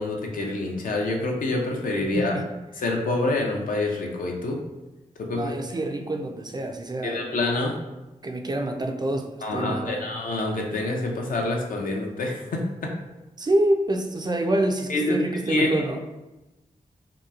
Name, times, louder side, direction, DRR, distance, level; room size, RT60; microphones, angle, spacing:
voice 1, 0.0-2.4 2.8-4.6 5.2-5.5 7.0-7.8 9.4-12.9 14.9-15.7, left 2 dB, 70° left, 1 dB, 0.5 m, -26 dB
voice 2, 5.3-7.2 8.2-10.0 13.4-16.0, right 1 dB, 30° right, 4 dB, 0.3 m, -26 dB
2.9 x 2.3 x 2.3 m, 1.0 s
cardioid pair, 45°, 15 cm